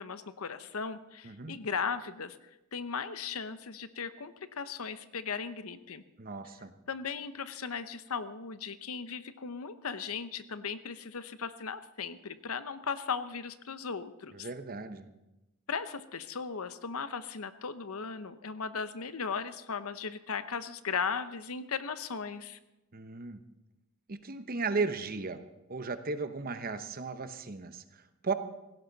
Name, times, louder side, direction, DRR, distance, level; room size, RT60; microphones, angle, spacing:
voice 1, 0.0-2.4 2.7-6.0 6.9-14.5 15.7-22.6, left 5 dB, 70° left, 12 dB, 0.8 m, -37 dB
voice 2, 1.2-1.6 6.2-6.7 14.3-15.1 22.9-23.4 24.1-25.4 25.7-28.3, right 4 dB, 40° right, 10 dB, 0.9 m, -36 dB
17.0 x 16.5 x 4.0 m, 0.96 s
head